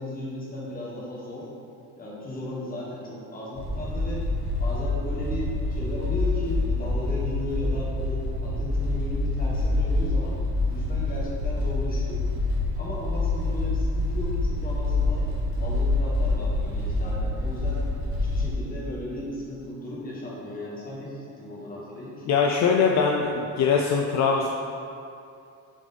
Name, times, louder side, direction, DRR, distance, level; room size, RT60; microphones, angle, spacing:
voice 1, 0.0-1.5 2.0-4.3 4.6-10.4 10.7-12.3 12.8-15.3 15.6-17.8 18.2-22.2, left 1 dB, 30° left, -5 dB, 1.5 m, -35 dB
sound 1, 3.6-18.5, left 2 dB, 45° right, 1.4 m, -26 dB
voice 2, 22.3-24.5, left 5 dB, 60° left, 1 dB, 0.5 m, -22 dB
7.2 x 4.9 x 4.1 m, 2.6 s
cardioid pair, 170°, 31 cm